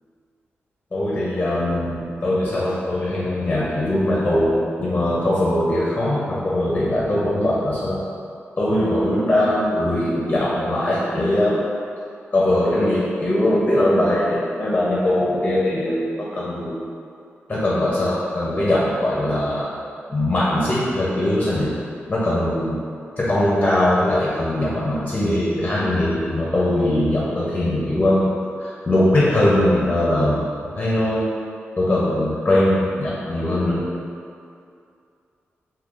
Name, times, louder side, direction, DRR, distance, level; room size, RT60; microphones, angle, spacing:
voice 1, 0.9-8.0 8.6-11.6 12.3-16.8 17.5-19.7 20.1-21.7 22.1-22.8 23.2-28.3 28.6-30.4 30.8-31.3 31.8-33.9, left 1 dB, 30° left, -7 dB, 0.5 m, -21 dB
3.7 x 2.8 x 2.4 m, 2.5 s
wide cardioid pair, 100°, 4 cm